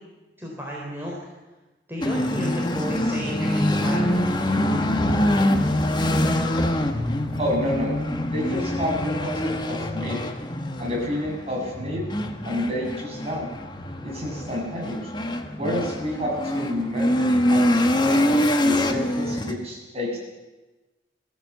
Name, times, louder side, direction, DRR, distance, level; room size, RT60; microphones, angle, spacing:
voice 1, 0.4-1.2 1.9-4.2, equal, 10° right, -4 dB, 3.9 m, -32 dB
sound 1, 2.0-19.5, left 1 dB, 25° left, 1.5 m, -24 dB
voice 2, 7.4-8.0 8.3-10.2 10.8-12.0 12.4-13.5 14.0-15.0 15.6-18.2 18.6-20.2, left 1 dB, 35° right, -2 dB, 7.7 m, -29 dB
22.5 x 15.5 x 8.3 m, 1.1 s
head